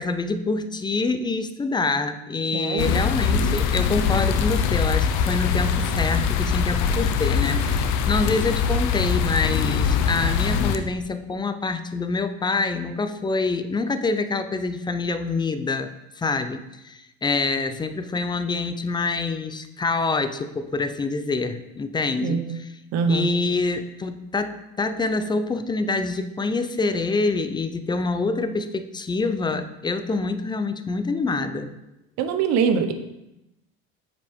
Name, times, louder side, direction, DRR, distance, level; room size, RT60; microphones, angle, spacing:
voice 1, 0.0-22.7 23.1-31.7, left 3 dB, 15° left, 10 dB, 0.5 m, -26 dB
voice 2, 2.5-3.0 22.2-22.6 22.9-23.3 32.2-32.9, right 6 dB, 60° right, 8 dB, 0.9 m, -23 dB
sound 1, 2.8-10.8, left 6 dB, 70° left, 0.7 m, -22 dB
7.4 x 5.1 x 3.6 m, 0.93 s
supercardioid pair, 95°, 29 cm